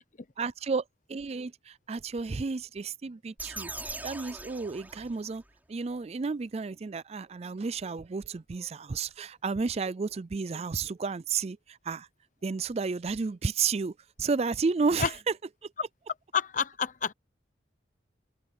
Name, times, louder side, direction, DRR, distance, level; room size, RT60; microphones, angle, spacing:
voice 1, 0.4-0.8 1.1-3.7 4.0-5.4 5.7-12.1 12.4-13.9 14.2-15.1, right 4 dB, 35° right, 0.4 m, -32 dB
sound 1, 3.4-5.5, right 2 dB, 10° right, 5.4 m, -41 dB
voice 2, 16.3-17.1, left 6 dB, 45° left, 0.8 m, -28 dB
head